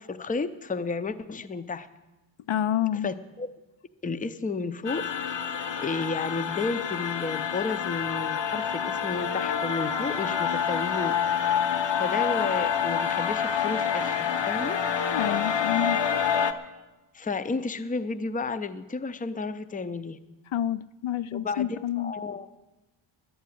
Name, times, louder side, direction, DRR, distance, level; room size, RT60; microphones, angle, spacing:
voice 1, 0.0-1.9 3.0-3.5 4.0-5.4 5.8-11.2 12.0-14.8 17.1-20.2 21.3-22.5, left 4 dB, 20° left, 12 dB, 0.5 m, -32 dB
voice 2, 2.5-3.1 15.1-16.0 20.5-22.1, left 10 dB, 80° left, 14 dB, 0.6 m, -28 dB
sound 1, 4.8-16.5, left 7 dB, 60° left, 0.9 m, -27 dB
11.0 x 9.5 x 9.2 m, 1.1 s
wide cardioid pair, 140°, 47 cm